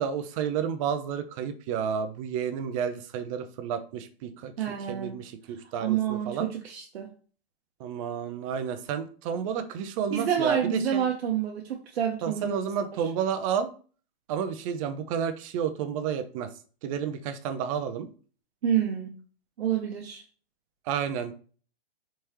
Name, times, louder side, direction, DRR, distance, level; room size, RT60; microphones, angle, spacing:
voice 1, 0.0-4.5 4.9-6.5 7.8-11.1 12.2-13.7 14.3-16.5 16.8-18.1 20.9-21.3, right 7 dB, 35° right, 9 dB, 0.5 m, -31 dB
voice 2, 4.6-5.2 5.8-7.1 10.1-12.6 12.9-13.0 18.6-19.1 19.6-20.2, right 9 dB, 70° right, 0 dB, 0.8 m, -28 dB
3.5 x 3.1 x 2.9 m, 0.41 s
hypercardioid pair, 135°, 32 cm